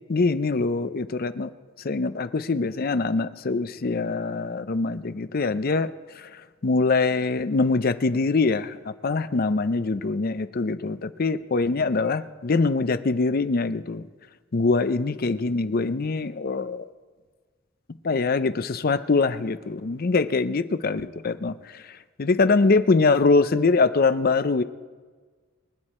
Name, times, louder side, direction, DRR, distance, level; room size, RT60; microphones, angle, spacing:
voice 1, 0.1-1.5 1.8-5.9 6.2-14.0 14.5-16.9 18.0-21.8 22.2-24.6, left 3 dB, 45° left, 12 dB, 0.5 m, -23 dB
24.5 x 9.9 x 4.3 m, 1.5 s
head